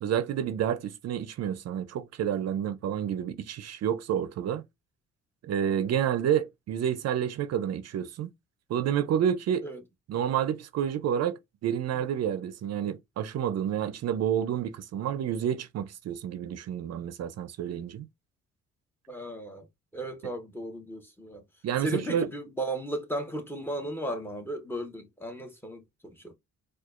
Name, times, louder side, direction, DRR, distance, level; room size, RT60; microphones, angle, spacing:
voice 1, 0.0-4.6 5.4-8.3 8.7-9.6 10.1-18.1 21.6-22.3, right 9 dB, 55° right, 0.5 m, -29 dB
voice 2, 19.1-19.7 19.9-21.4 21.8-26.3, right 1 dB, 5° left, 0.9 m, -35 dB
4.4 x 2.3 x 2.4 m
cardioid pair, 90°, 30 cm